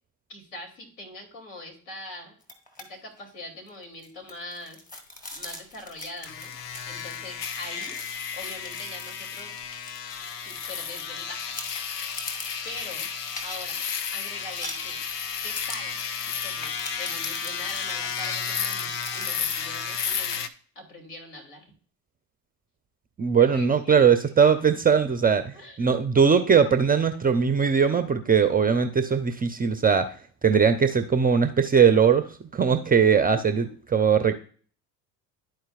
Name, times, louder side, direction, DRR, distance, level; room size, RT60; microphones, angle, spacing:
voice 1, 0.3-2.4 2.8-4.8 5.3-6.5 6.9-8.0 8.3-9.6 10.4-11.6 12.6-13.1 13.4-13.8 14.1-15.0 15.4-20.5 20.7-21.7 23.4-24.4 25.5-25.8 33.2-33.7, left 2 dB, 60° left, 0 dB, 3.1 m, -42 dB
sound 1, 2.4-2.9 3.2-3.3 3.7-11.2 11.5-19.4, left 1 dB, 20° left, 2.0 m, -43 dB
sound 2, 6.2-20.5, left 7 dB, 90° left, 0.6 m, -32 dB
voice 2, 23.2-30.1 30.4-33.7 33.9-34.4, right 6 dB, 20° right, 9 dB, 0.6 m, -20 dB
12.5 x 4.5 x 2.4 m, 0.43 s
hypercardioid pair, 65°, 46 cm